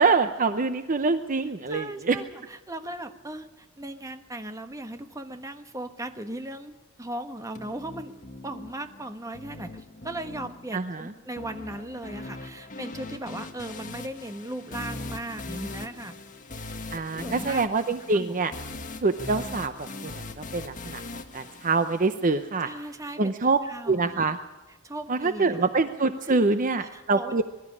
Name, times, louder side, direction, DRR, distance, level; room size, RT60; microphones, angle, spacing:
voice 1, 0.0-2.2 10.7-11.1 16.9-18.5 19.0-20.2 20.5-21.0 21.3-22.7 23.2-23.6 23.9-24.4 25.1-27.4, right 3 dB, 40° right, 9 dB, 0.7 m, -25 dB
voice 2, 1.7-8.2 8.4-16.2 16.6-16.8 17.1-17.7 18.1-18.4 22.6-23.3 23.6-24.3 24.7-25.7 26.3-27.4, right 1 dB, 15° right, 7 dB, 1.2 m, -38 dB
sound 1, 7.5-22.5, left 2 dB, 40° left, 1.7 m, -40 dB
22.5 x 13.0 x 9.9 m, 1.1 s
head